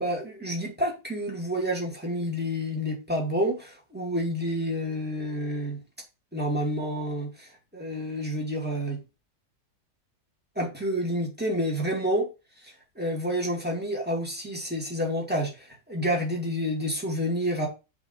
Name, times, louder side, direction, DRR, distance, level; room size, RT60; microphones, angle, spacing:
voice 1, 0.0-5.8 6.3-9.0 10.6-12.3 13.0-17.7, equal, 5° right, 2.2 m, -29 dB
6.1 x 3.8 x 5.6 m
omnidirectional pair, 1.7 m